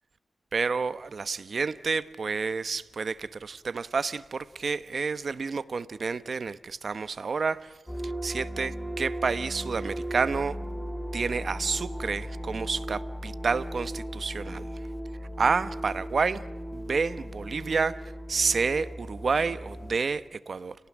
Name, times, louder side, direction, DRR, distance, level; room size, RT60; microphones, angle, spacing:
voice 1, 0.5-7.7 8.0-10.6 11.1-14.7 15.4-16.4 16.7-20.8, right 4 dB, 60° right, 1.0 m, -29 dB
sound 1, 7.9-20.0, equal, 5° left, 3.7 m, -37 dB
30.0 x 18.5 x 10.0 m
wide cardioid pair, 80°, 0 cm